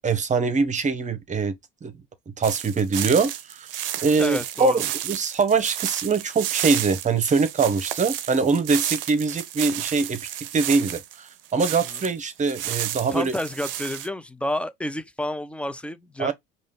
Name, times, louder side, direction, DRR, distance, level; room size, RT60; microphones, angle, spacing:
voice 1, 0.0-1.5 1.8-1.9 2.4-3.7 4.0-13.3 16.2-16.3, right 4 dB, 25° right, 1.2 m, -23 dB
sound 1, 2.4-12.1 12.4-14.1, right 12 dB, 70° right, 0.6 m, -31 dB
voice 2, 4.2-4.8 13.1-16.3, left 1 dB, 5° left, 0.6 m, -29 dB
5.0 x 2.6 x 3.7 m
figure-of-eight pair, 70°, 29 cm